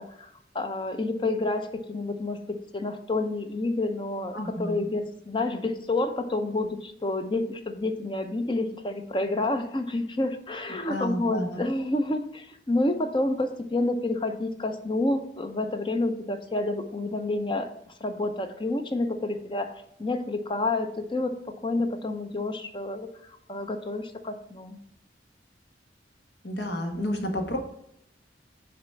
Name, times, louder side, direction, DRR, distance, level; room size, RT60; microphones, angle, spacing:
voice 1, 0.0-2.4 2.7-17.7 18.0-24.8, left 2 dB, 30° left, 7 dB, 0.6 m, -29 dB
voice 2, 4.3-4.9 10.7-11.6 26.4-27.6, equal, 75° left, 3 dB, 1.4 m, -31 dB
6.5 x 4.0 x 5.7 m, 0.76 s
head